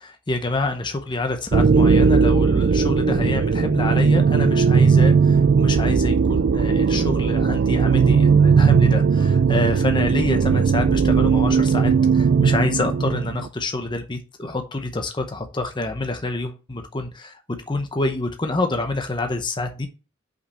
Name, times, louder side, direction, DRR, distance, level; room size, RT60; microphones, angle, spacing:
voice 1, 0.0-17.4 17.7-19.9, left 2 dB, 25° left, 6 dB, 0.7 m, -27 dB
sound 1, 1.5-13.5, right 5 dB, 55° right, 0.4 m, -17 dB
5.7 x 5.2 x 5.6 m, 0.32 s
head